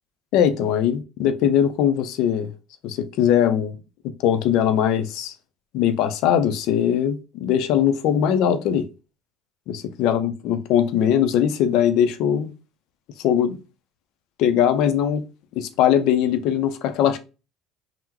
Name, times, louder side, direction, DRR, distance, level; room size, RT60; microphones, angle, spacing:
voice 1, 0.3-2.5 2.8-3.8 4.2-5.3 5.7-8.9 9.7-12.5 13.2-13.6 14.4-15.2 15.6-17.2, left 9 dB, 70° left, 0.4 m, -20 dB
3.6 x 2.0 x 2.8 m
supercardioid pair, 100°, 0 cm